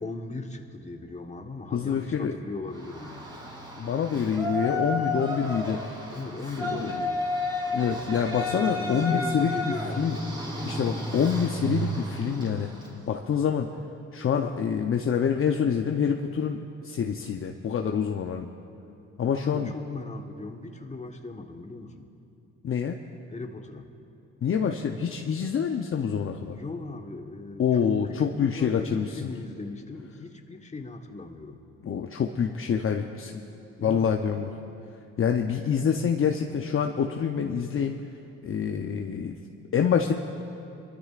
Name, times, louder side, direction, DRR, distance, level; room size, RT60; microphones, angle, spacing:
voice 1, 0.0-3.3 6.1-7.3 8.4-10.3 19.3-22.1 23.3-23.9 26.5-31.6 33.8-34.2, left 3 dB, 20° left, 4 dB, 1.3 m, -38 dB
voice 2, 1.7-2.4 3.8-5.8 6.6-6.9 7.7-10.2 10.6-12.7 13.1-13.7 14.1-16.6 16.8-18.5 19.2-19.7 22.6-23.0 24.4-26.6 27.6-29.3 31.8-33.4 33.8-34.5 35.2-38.0 38.4-39.4 39.7-40.1, left 7 dB, 45° left, 3 dB, 0.7 m, -26 dB
Yell, 2.7-13.0, left 1 dB, 15° right, 3.6 m, -32 dB
24.0 x 13.5 x 2.5 m, 2.8 s
supercardioid pair, 70°, 31 cm